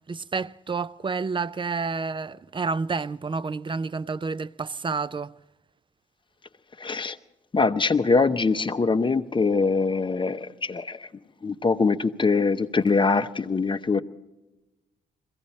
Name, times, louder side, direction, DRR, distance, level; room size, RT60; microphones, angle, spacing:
voice 1, 0.1-5.3, right 4 dB, 25° right, 0.4 m, -29 dB
voice 2, 6.8-7.2 7.5-11.1 11.4-14.0, left 4 dB, 25° left, 0.8 m, -23 dB
21.5 x 15.5 x 4.2 m
cardioid pair, 75°, 20 cm